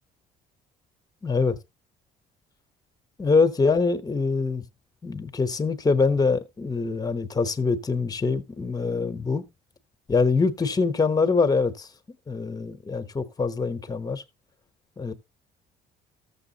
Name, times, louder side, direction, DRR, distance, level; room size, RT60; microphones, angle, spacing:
voice 1, 1.2-1.6 3.2-4.6 5.0-9.4 10.1-11.9 12.3-14.2 15.0-15.1, left 4 dB, 20° left, 0.9 m, -24 dB
13.5 x 7.0 x 2.8 m
cardioid pair, 110°, 17 cm